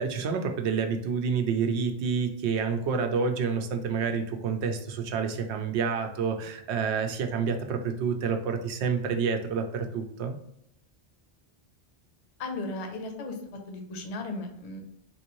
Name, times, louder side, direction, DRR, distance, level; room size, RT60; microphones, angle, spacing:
voice 1, 0.0-10.4, right 5 dB, 85° right, 5 dB, 0.9 m, -28 dB
voice 2, 12.4-13.4 13.7-14.8, left 2 dB, 45° left, 3 dB, 0.6 m, -35 dB
3.6 x 2.6 x 3.0 m, 0.78 s
omnidirectional pair, 1.1 m